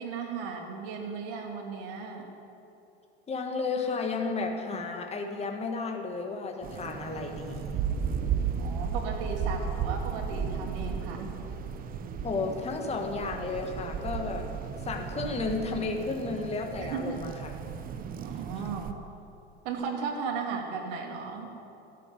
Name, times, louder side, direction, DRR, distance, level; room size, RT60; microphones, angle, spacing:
voice 1, 0.0-2.3 8.6-11.3 16.8-17.2 18.2-19.0 19.6-21.5, right 5 dB, 60° right, 2 dB, 2.8 m, -36 dB
voice 2, 3.3-7.8 12.2-14.5 14.8-17.5, left 4 dB, 20° left, 3 dB, 1.7 m, -33 dB
sound 1, 6.6-18.9, right 7 dB, 25° right, 0.9 m, -34 dB
13.5 x 7.9 x 9.9 m, 2.8 s
hypercardioid pair, 110°, 33 cm